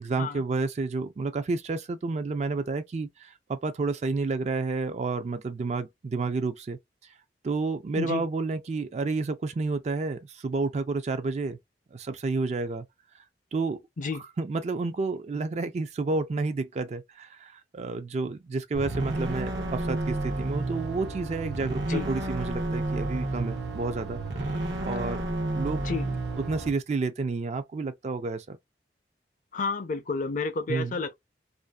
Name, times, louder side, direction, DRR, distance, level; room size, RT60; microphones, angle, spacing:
voice 1, 0.0-6.8 7.4-11.6 11.9-12.8 13.5-13.8 14.4-25.2 25.5-25.8 26.5-28.6 30.7-30.9, right 3 dB, 40° right, 0.3 m, -30 dB
sound 1, 18.7-26.7, right 2 dB, 80° right, 0.8 m, -31 dB
voice 2, 29.5-31.1, left 4 dB, 45° left, 0.5 m, -30 dB
2.5 x 2.3 x 2.2 m
head